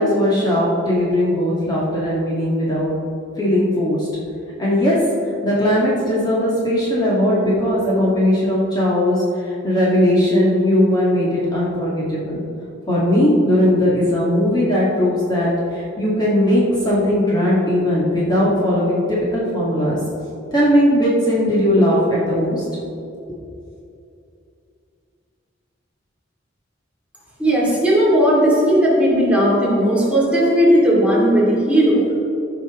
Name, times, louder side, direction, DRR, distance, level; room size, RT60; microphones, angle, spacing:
voice 1, 0.0-2.9 3.4-4.1 4.6-5.0 5.4-12.4 12.9-20.0 20.5-22.6, left 1 dB, 20° left, -7 dB, 1.8 m, -18 dB
voice 2, 27.4-32.1, equal, 5° right, -6 dB, 2.4 m, -16 dB
15.5 x 5.6 x 3.6 m, 2.6 s
head